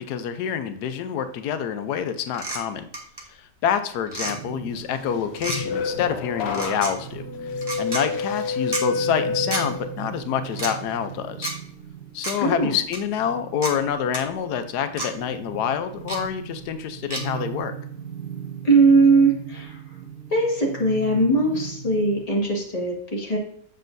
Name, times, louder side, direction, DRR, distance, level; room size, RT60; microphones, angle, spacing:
voice 1, 0.0-2.9 3.3-7.5 7.8-11.5 12.1-17.7, left 8 dB, 90° left, 9 dB, 1.2 m, -27 dB
sound 1, 2.3-2.6 2.9-3.2 4.1-4.3 5.4-5.6 6.5-6.9 7.6-8.0 8.7-8.8 9.5-9.6 10.5-10.7 11.4-11.5 12.2-12.4 12.9-13.0 13.6-13.7 14.1-14.2 15.0-15.1 16.1-16.2 17.1-17.2, right 2 dB, 20° right, 1.0 m, -29 dB
sound 2, 4.2-22.2, right 9 dB, 60° right, 1.5 m, -39 dB
sound 3, 5.1-10.1 10.5-11.0, left 5 dB, 55° left, 0.8 m, -29 dB
voice 2, 12.4-12.7 18.6-19.8 20.3-23.4, right 3 dB, 25° left, -3 dB, 1.8 m, -20 dB
7.7 x 6.2 x 2.6 m, 0.66 s
omnidirectional pair, 1.7 m